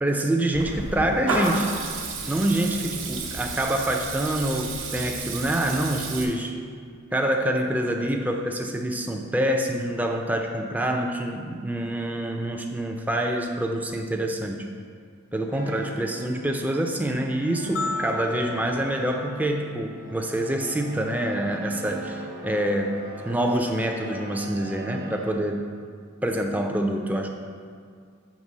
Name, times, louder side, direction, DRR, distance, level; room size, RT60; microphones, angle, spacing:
voice 1, 0.0-1.7 2.3-6.5 7.1-14.7 15.3-22.9 23.2-25.6 26.2-27.3, right 1 dB, 10° right, 2 dB, 0.4 m, -26 dB
Water tap faucet / Liquid, 0.5-6.2, right 3 dB, 75° right, 0.9 m, -31 dB
sound 1, 15.5-25.3, right 1 dB, 45° right, 0.8 m, -42 dB
sound 2, 17.8-20.1, left 3 dB, 85° left, 0.3 m, -35 dB
7.3 x 3.4 x 5.4 m, 2.1 s
head